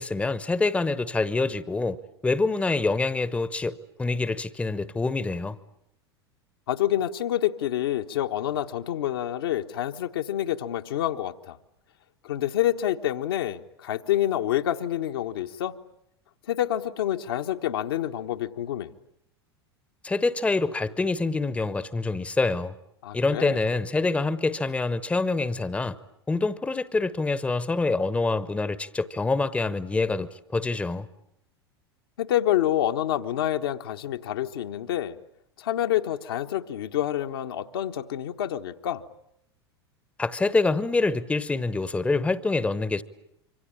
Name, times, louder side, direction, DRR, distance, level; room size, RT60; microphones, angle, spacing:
voice 1, 0.0-2.0 2.2-5.6 20.0-22.7 23.1-26.0 26.3-31.1 40.2-43.0, left 3 dB, 10° left, 1.0 m, -26 dB
voice 2, 6.7-11.6 12.2-15.7 16.5-18.9 23.0-23.6 32.2-35.2 35.6-39.0, left 12 dB, 60° left, 1.3 m, -27 dB
26.5 x 25.0 x 8.7 m
figure-of-eight pair, 85°, 14 cm